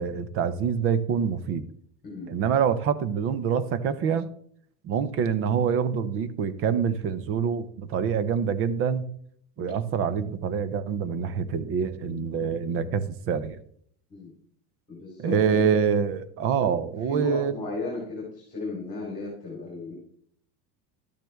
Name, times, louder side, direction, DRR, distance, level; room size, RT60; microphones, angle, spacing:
voice 1, 0.0-1.7 2.3-4.3 4.8-9.1 9.6-13.6 15.2-17.5, right 7 dB, 30° right, 15 dB, 0.5 m, -26 dB
voice 2, 14.9-15.6 16.5-16.8 17.1-19.9, left 2 dB, 15° left, -3 dB, 3.1 m, -35 dB
12.0 x 9.2 x 3.4 m, 0.63 s
cardioid pair, 160°, 48 cm